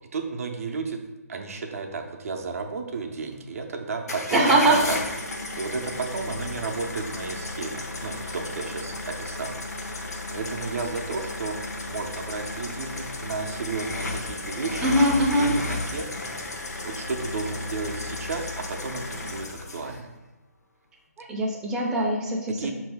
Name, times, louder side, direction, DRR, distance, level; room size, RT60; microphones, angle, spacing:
voice 1, 0.1-1.0 1.3-4.5 4.8-5.0 5.5-9.5 9.8-14.8 15.4-16.1 16.8-20.1 22.6-22.7, right 4 dB, 60° right, 3 dB, 0.6 m, -33 dB
sound 1, 4.1-20.0, left 2 dB, 75° left, 0.8 m, -33 dB
voice 2, 4.3-4.9 14.8-15.5 21.2-22.7, right 1 dB, 5° right, -4 dB, 0.4 m, -22 dB
5.4 x 2.7 x 3.4 m, 1.1 s
hypercardioid pair, 150°, 9 cm